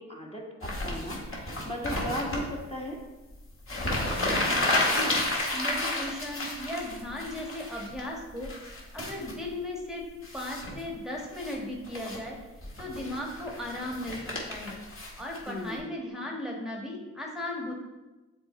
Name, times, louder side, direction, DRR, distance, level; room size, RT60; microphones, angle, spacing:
voice 1, 0.0-3.0 15.5-16.0, equal, 15° left, -2 dB, 1.4 m, -37 dB
sound 1, 0.6-2.4 3.3-3.4 3.6-8.0 8.4-9.3 10.2-10.8 11.2-11.6 11.8-12.2 12.6-15.7, left 1 dB, 35° left, 1.8 m, -31 dB
voice 2, 4.9-5.2 5.5-8.5 8.9-10.0 10.3-12.4 12.8-14.8 15.2-17.7, left 1 dB, ahead, -1 dB, 1.4 m, -36 dB
7.0 x 3.5 x 4.2 m, 1.1 s
supercardioid pair, 45°, 35 cm